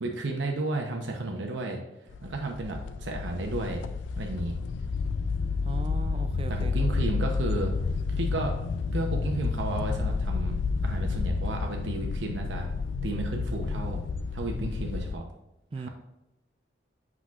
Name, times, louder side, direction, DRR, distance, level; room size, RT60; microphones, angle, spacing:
voice 1, 0.0-1.8 2.2-3.8 4.2-4.6 6.5-7.8 8.2-8.5 8.9-10.6 10.8-12.7 13.0-14.0 14.3-15.2 15.8-15.9, right 2 dB, 85° right, 2 dB, 0.8 m, -33 dB
sound 1, 2.1-15.2, left 4 dB, 85° left, 0.4 m, -30 dB
voice 2, 5.6-6.7 15.7-15.9, right 3 dB, 30° right, 9 dB, 0.3 m, -37 dB
8.2 x 6.0 x 2.4 m, 0.92 s
head